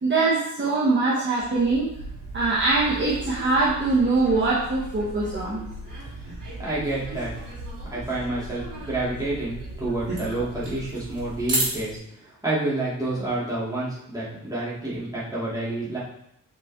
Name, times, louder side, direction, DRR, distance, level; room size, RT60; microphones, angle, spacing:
voice 1, 0.0-1.9 2.3-5.6, right 3 dB, 35° right, -5 dB, 1.2 m, -22 dB
sound 1, 1.4-12.0, right 1 dB, 60° right, 2.8 m, -35 dB
voice 2, 6.6-7.3 7.9-12.0 12.4-16.0, right 2 dB, 10° right, -8 dB, 2.8 m, -29 dB
6.0 x 5.4 x 3.7 m, 0.75 s
wide cardioid pair, 125°, 34 cm